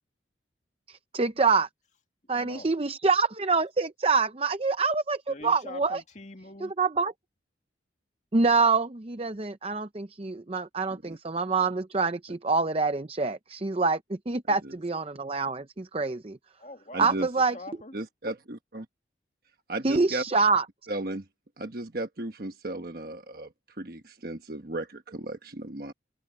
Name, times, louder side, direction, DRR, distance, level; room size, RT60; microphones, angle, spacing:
voice 1, 0.9-1.7 2.3-6.0 6.6-7.1 8.3-16.4 17.0-17.6 19.8-20.6, right 4 dB, 30° right, 0.6 m, -26 dB
voice 2, 2.3-2.7 5.3-6.7 16.6-17.9, left 2 dB, 40° left, 2.4 m, -44 dB
voice 3, 16.9-17.3 17.9-18.9 19.7-20.2 20.9-21.2 21.6-23.5 23.8-25.9, right 2 dB, 50° right, 1.3 m, -35 dB
head